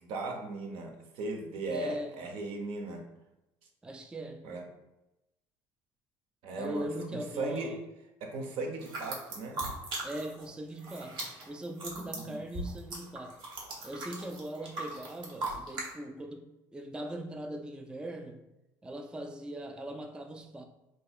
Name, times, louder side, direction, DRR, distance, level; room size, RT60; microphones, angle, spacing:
voice 1, 0.0-3.0 4.4-4.6 6.4-6.8 7.1-7.7 8.2-9.6 12.0-12.4, right 3 dB, 70° right, 0.7 m, -37 dB
voice 2, 1.7-2.2 3.8-4.5 6.5-7.8 10.0-13.4 13.8-18.4 18.8-20.6, right 1 dB, 10° right, 0.3 m, -40 dB
sound 1, 8.8-10.5 10.7-15.9, right 2 dB, 50° right, 1.1 m, -39 dB
3.9 x 2.9 x 2.4 m
supercardioid pair, 85°, 10 cm